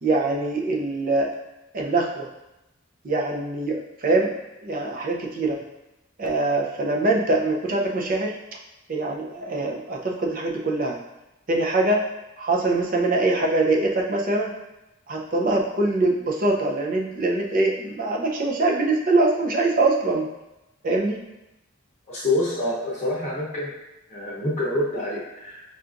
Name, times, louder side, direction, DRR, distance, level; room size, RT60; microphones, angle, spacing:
voice 1, 0.0-1.3 1.7-2.3 3.0-4.3 4.6-5.6 6.2-8.4 8.9-11.0 11.5-12.0 12.4-14.5 15.1-20.3 20.8-21.2, right 2 dB, 45° right, 0 dB, 0.5 m, -23 dB
voice 2, 22.1-23.7 24.1-25.6, left 1 dB, 35° left, -7 dB, 0.7 m, -26 dB
5.6 x 2.4 x 2.5 m, 0.96 s
head